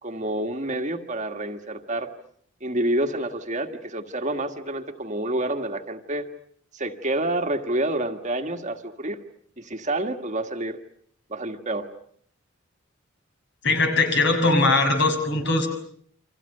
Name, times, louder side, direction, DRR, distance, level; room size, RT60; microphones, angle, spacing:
voice 1, 0.0-2.1 2.6-6.3 6.7-9.2 9.6-10.8 11.3-11.9, right 1 dB, 35° right, 6 dB, 1.8 m, -28 dB
voice 2, 13.6-15.7, left 2 dB, 60° left, 5 dB, 6.3 m, -20 dB
29.5 x 25.5 x 6.8 m, 0.62 s
head